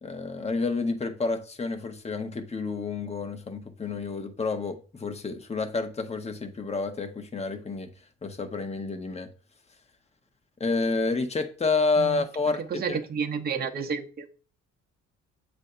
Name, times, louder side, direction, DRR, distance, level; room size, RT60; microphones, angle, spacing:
voice 1, 0.0-7.9 8.2-9.3 10.6-13.0, left 3 dB, 20° left, 0.9 m, -29 dB
voice 2, 12.7-14.3, right 6 dB, 30° right, 0.8 m, -30 dB
7.4 x 2.6 x 5.4 m
cardioid pair, 90°, 30 cm